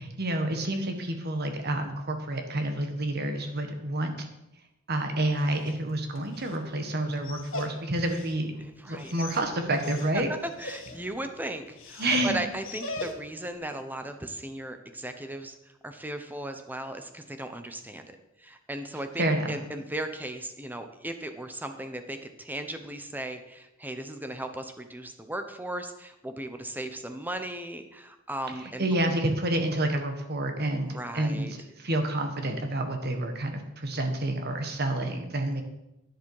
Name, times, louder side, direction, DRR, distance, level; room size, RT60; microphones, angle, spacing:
voice 1, 0.0-4.3 4.9-8.5 8.8-10.3 12.0-12.4 19.2-19.5 28.8-35.6, right 1 dB, 50° right, 5 dB, 1.6 m, -29 dB
Dog, 5.2-13.5, left 2 dB, 75° left, 1.7 m, -42 dB
voice 2, 8.6-9.1 10.3-15.6 15.8-29.1 30.8-31.5, right 1 dB, 10° right, 7 dB, 0.9 m, -37 dB
11.0 x 10.5 x 4.9 m, 0.92 s
head